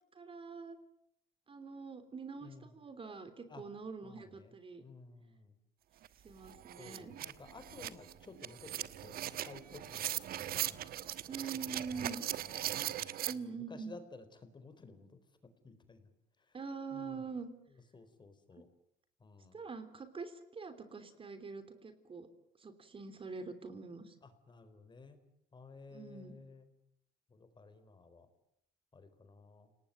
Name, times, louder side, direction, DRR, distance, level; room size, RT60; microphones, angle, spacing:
voice 1, 0.1-0.8 1.5-4.8 6.2-7.1 11.3-12.3 13.2-13.9 16.5-17.5 19.5-22.3 22.6-24.1 25.9-26.4, right 5 dB, 30° right, 10 dB, 3.2 m, -45 dB
voice 2, 4.0-4.5 4.8-5.5 6.8-10.9 11.4-12.1 12.4-12.5 12.7-16.1 16.5-16.6 16.9-17.2 17.9-18.7 19.2-19.6 24.2-25.2 25.5-26.7 27.3-28.3 28.9-29.7, left 3 dB, 25° left, 10 dB, 4.1 m, -55 dB
sound 1, 6.0-6.1 6.4-13.3, right 12 dB, 65° right, 1.3 m, -39 dB
28.5 x 19.0 x 9.3 m, 0.76 s
cardioid pair, 110°, 17 cm